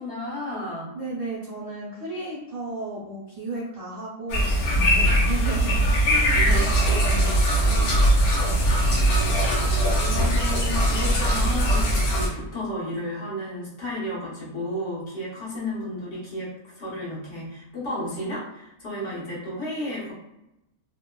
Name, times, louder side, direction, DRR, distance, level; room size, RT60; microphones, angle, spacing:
voice 1, 0.0-0.9 6.3-8.2 9.7-20.1, left 1 dB, 50° left, -7 dB, 1.2 m, -33 dB
voice 2, 0.9-4.5 4.9-6.5 6.9-7.3 7.7-9.0, right 2 dB, 75° right, -8 dB, 0.3 m, -35 dB
sound 1, 4.3-12.3, right 1 dB, 85° left, 1.3 m, -21 dB
2.8 x 2.1 x 2.2 m, 0.88 s
omnidirectional pair, 1.5 m